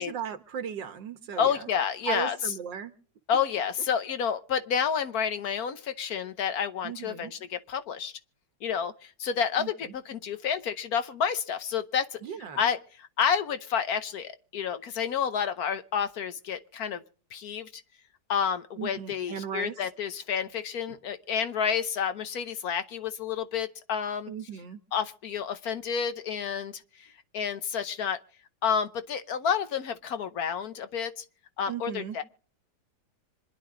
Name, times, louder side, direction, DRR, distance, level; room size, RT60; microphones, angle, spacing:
voice 1, 0.0-1.7 2.1-2.9 6.8-7.3 9.6-9.7 12.2-12.7 18.8-19.8 24.3-24.8 31.7-32.2, right 8 dB, 85° right, 1.9 m, -36 dB
voice 2, 1.4-2.4 3.3-8.1 8.6-12.2 12.6-17.0 17.3-17.8 18.3-24.3 24.9-28.2 28.6-31.2 31.6-32.2, left 7 dB, 65° left, 1.2 m, -30 dB
26.0 x 10.5 x 3.8 m
omnidirectional pair, 1.9 m